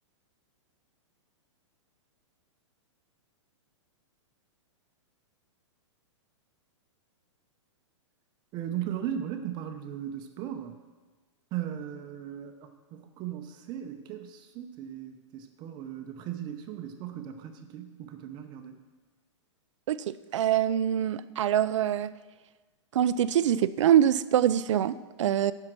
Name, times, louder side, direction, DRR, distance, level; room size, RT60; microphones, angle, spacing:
voice 1, 8.5-10.8 11.5-18.8, right 10 dB, 30° right, 6 dB, 0.7 m, -37 dB
voice 2, 19.9-22.1 22.9-25.5, right 10 dB, 75° right, 16 dB, 0.5 m, -24 dB
9.7 x 5.8 x 6.1 m, 1.3 s
hypercardioid pair, 145°, 16 cm